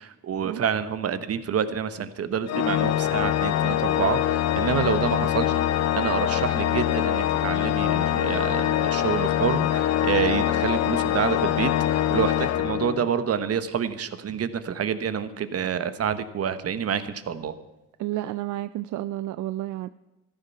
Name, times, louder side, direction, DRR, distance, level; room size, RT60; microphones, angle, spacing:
voice 1, 0.0-17.5, right 7 dB, 50° right, 13 dB, 1.1 m, -28 dB
Organ, 2.5-13.3, left 11 dB, 60° left, 0.6 m, -24 dB
voice 2, 18.0-19.9, right 14 dB, 75° right, 15 dB, 0.5 m, -31 dB
14.0 x 11.5 x 5.8 m, 1.0 s
cardioid pair, 90°, 30 cm